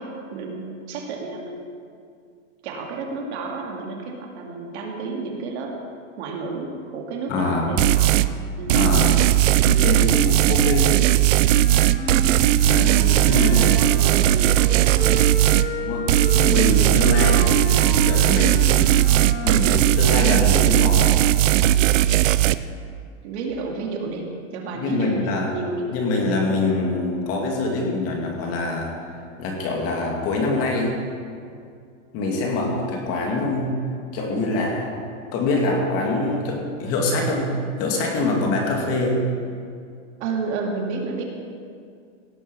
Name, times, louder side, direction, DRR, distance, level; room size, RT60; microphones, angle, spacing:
voice 1, 0.0-1.7 2.6-5.8 6.2-8.1 8.6-8.9 12.8-15.2 23.2-25.9 40.2-41.2, right 3 dB, 55° right, 0 dB, 2.4 m, -31 dB
voice 2, 7.3-7.8 8.7-9.2 9.6-11.0 12.6-13.0 13.3-13.8 15.7-16.0 16.3-18.7 19.4-21.2 24.7-25.6 25.9-28.9 29.4-31.0 32.1-33.7 34.1-34.9 35.3-37.5 37.8-39.2, left 2 dB, 35° left, 0 dB, 2.6 m, -24 dB
sound 1, 7.8-8.3 8.7-15.7 16.1-22.6, right 14 dB, 75° right, 0.6 m, -17 dB
Wind instrument woodwind instrument, 11.4-14.3 14.8-19.7, left 2 dB, 60° left, 3.3 m, -32 dB
17.0 x 8.6 x 5.6 m, 2.3 s
supercardioid pair, 145°, 39 cm